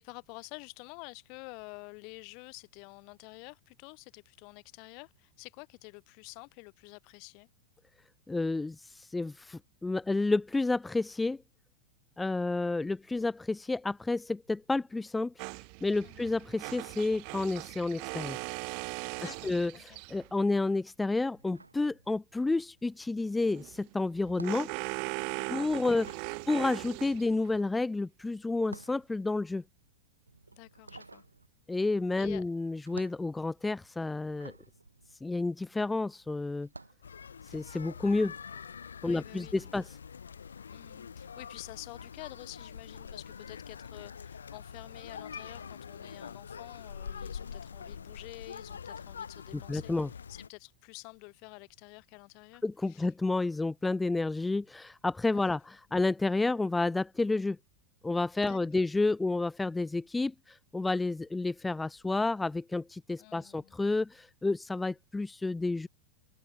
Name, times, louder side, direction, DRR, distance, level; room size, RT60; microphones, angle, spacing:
voice 1, 0.0-7.5 16.0-16.3 19.2-20.0 25.3-25.9 30.5-31.2 32.2-32.4 39.0-39.8 40.7-49.9 50.3-53.1 55.3-55.5 58.4-58.6 63.2-63.8, left 34 dB, 45° left, 6.8 m, -49 dB
voice 2, 8.3-11.4 12.2-15.3 15.8-18.4 19.4-24.7 25.5-29.6 31.7-34.5 35.2-36.7 37.4-38.3 39.0-39.9 49.7-50.1 52.6-57.6 58.0-65.9, left 3 dB, 10° left, 1.9 m, -30 dB
sound 1, 15.4-20.3 23.4-27.6, right 40 dB or more, 45° right, 1.2 m, -40 dB
sound 2, 21.3-22.6 22.8-36.0 36.6-37.1, right 3 dB, 80° right, 7.8 m, -53 dB
sound 3, 37.0-50.5, left 6 dB, 70° left, 6.2 m, -45 dB
open air
figure-of-eight pair, 90°, 0 cm